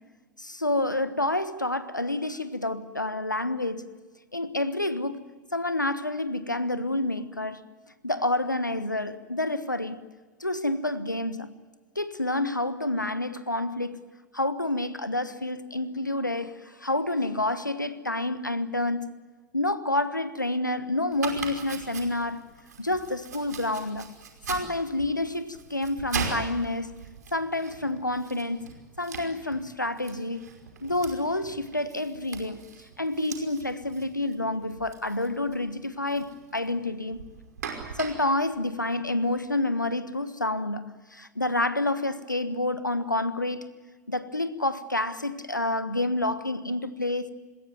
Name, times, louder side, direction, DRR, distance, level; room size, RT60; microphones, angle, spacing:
voice 1, 0.4-3.9 4.3-5.2 5.5-7.6 8.0-10.0 10.4-11.5 11.9-14.0 14.3-19.1 19.5-22.5 22.8-24.1 24.5-26.9 27.3-28.7 29.0-30.5 30.8-32.6 33.0-37.2 37.9-43.7 44.1-47.3, left 2 dB, 90° left, 1.3 m, -28 dB
Domestic sounds home sounds, 21.1-39.6, right 6 dB, 65° right, 5.4 m, -41 dB
26.5 x 21.0 x 9.3 m
figure-of-eight pair, 95°, 10 cm